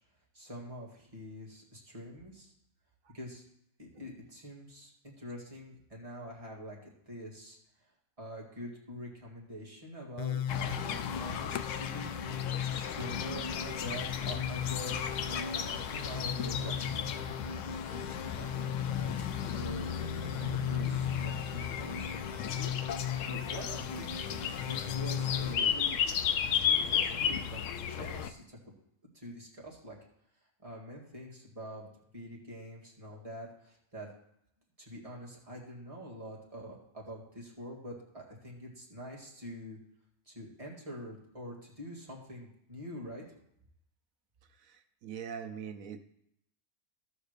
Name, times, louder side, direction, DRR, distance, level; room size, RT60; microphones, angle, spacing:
voice 1, 0.3-2.5 3.1-3.4 3.8-7.6 8.2-12.1 12.7-19.9 20.3-22.9 23.3-26.0 26.4-28.6 29.1-30.0 30.6-31.9 32.1-34.1 34.8-39.8 40.3-43.2, equal, 25° right, -4 dB, 2.2 m, -45 dB
sound 1, 10.2-25.5, left 7 dB, 55° left, 0.5 m, -37 dB
sound 2, 10.5-28.3, left 8 dB, 70° left, 0.9 m, -35 dB
voice 2, 44.6-46.0, right 7 dB, 75° right, 6 dB, 1.3 m, -42 dB
13.0 x 4.4 x 6.6 m, 0.78 s
omnidirectional pair, 1.4 m